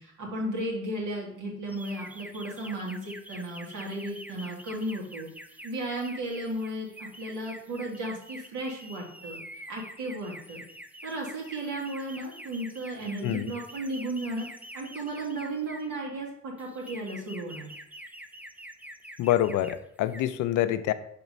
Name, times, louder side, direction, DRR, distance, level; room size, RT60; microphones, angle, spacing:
voice 1, 0.0-5.3 5.6-9.4 9.7-10.6 11.0-14.5 14.7-17.7, right 1 dB, 85° right, -2 dB, 1.9 m, -34 dB
sound 1, 1.7-16.0 16.6-19.8 20.0-20.4, equal, 5° right, 0.4 m, -46 dB
voice 2, 19.2-20.9, left 12 dB, 85° left, 12 dB, 0.5 m, -26 dB
6.8 x 3.0 x 5.3 m, 0.70 s
cardioid pair, 90°, 30 cm